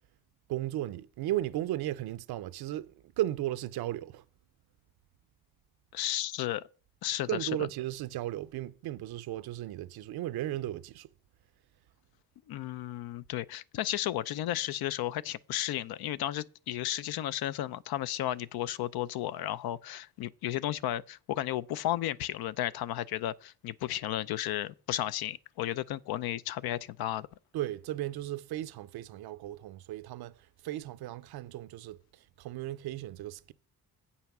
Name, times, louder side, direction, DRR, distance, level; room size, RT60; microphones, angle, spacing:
voice 1, 0.5-4.2 7.3-11.1 27.5-33.5, right 14 dB, 85° right, 0.7 m, -35 dB
voice 2, 5.9-6.7 7.0-7.5 12.5-27.3, left 13 dB, 80° left, 0.5 m, -33 dB
8.4 x 5.6 x 5.9 m
cardioid pair, 90°, 37 cm